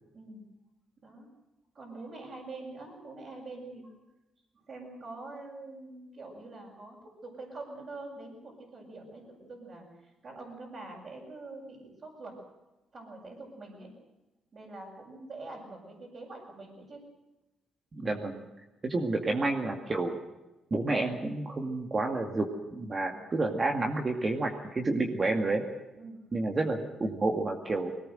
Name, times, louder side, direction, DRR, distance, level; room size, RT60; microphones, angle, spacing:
voice 1, 0.1-0.5 1.0-1.3 1.7-3.9 4.7-7.0 7.2-12.4 12.9-13.9 14.5-17.0 19.0-19.2 23.1-23.3 25.9-26.2, right 2 dB, 45° right, -5 dB, 7.0 m, -45 dB
voice 2, 17.9-18.4 18.8-20.2 20.7-22.5 22.7-25.6 26.3-27.9, right 2 dB, 30° right, 2 dB, 2.2 m, -30 dB
21.0 x 18.5 x 7.8 m, 1.0 s
cardioid pair, 90°, 0 cm